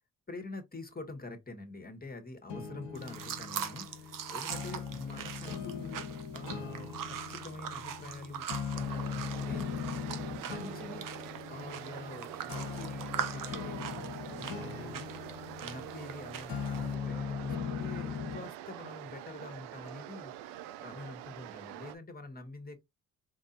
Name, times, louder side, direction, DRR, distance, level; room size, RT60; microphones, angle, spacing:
voice 1, 0.3-11.1 11.5-22.8, left 2 dB, 20° left, 1.6 m, -46 dB
sound 1, 2.5-18.5, left 7 dB, 80° left, 1.0 m, -40 dB
sound 2, 2.9-16.9, right 8 dB, 50° right, 0.8 m, -42 dB
sound 3, 8.7-21.9, right 12 dB, 75° right, 0.5 m, -45 dB
4.6 x 2.7 x 2.6 m
hypercardioid pair, 45°, 41 cm